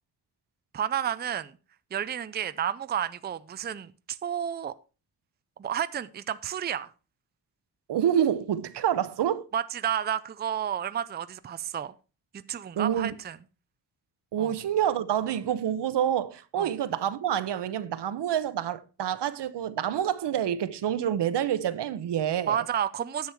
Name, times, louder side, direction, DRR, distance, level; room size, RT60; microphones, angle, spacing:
voice 1, 0.7-1.5 1.9-4.7 5.6-6.9 9.5-11.9 12.3-13.4 14.4-14.5 16.6-16.7 22.5-23.3, right 9 dB, 25° right, 0.4 m, -31 dB
voice 2, 7.9-9.5 12.7-13.1 14.3-22.6, right 10 dB, 80° right, 0.9 m, -27 dB
10.5 x 7.3 x 4.5 m
wide cardioid pair, 135°, 41 cm